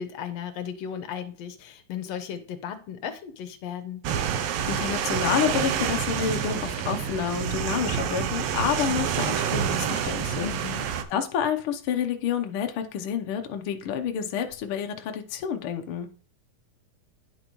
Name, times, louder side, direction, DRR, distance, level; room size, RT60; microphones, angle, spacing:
voice 1, 0.0-4.0 10.4-10.9, left 8 dB, 70° left, 9 dB, 1.7 m, -35 dB
sound 1, 4.0-11.0, right 8 dB, 75° right, 1.6 m, -28 dB
voice 2, 4.7-10.5 11.1-16.1, left 8 dB, 90° left, 5 dB, 1.1 m, -29 dB
10.0 x 5.5 x 3.1 m, 0.41 s
omnidirectional pair, 3.6 m